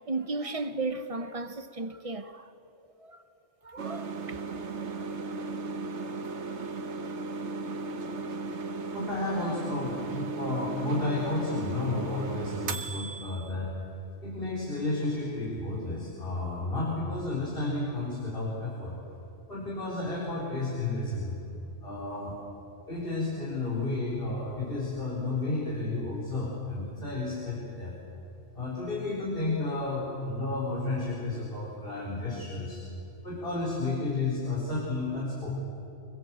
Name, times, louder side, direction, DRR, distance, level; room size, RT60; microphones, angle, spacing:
voice 1, 0.1-2.5 3.0-3.2 3.6-4.4, right 3 dB, 30° right, 1.0 m, -34 dB
sound 1, 3.8-13.5, right 3 dB, 70° right, 1.4 m, -36 dB
voice 2, 8.9-13.7 14.2-19.0 19.5-21.4 21.8-22.4 22.9-27.9 28.5-32.8 33.2-35.5, left 2 dB, 50° left, 4.6 m, -32 dB
25.5 x 21.5 x 7.7 m
omnidirectional pair, 1.2 m